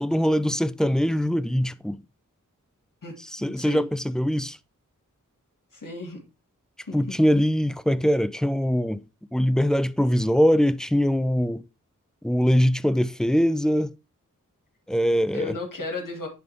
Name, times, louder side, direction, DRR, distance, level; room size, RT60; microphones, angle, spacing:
voice 1, 0.0-2.0 3.3-4.6 6.9-9.0 9.3-11.6 12.2-13.9 14.9-15.6, equal, ahead, 0.3 m, -22 dB
voice 2, 3.5-3.9 5.7-6.2 6.8-7.0 15.3-16.3, left 2 dB, 80° left, 2.1 m, -34 dB
10.0 x 3.6 x 3.5 m
wide cardioid pair, 55°, 32 cm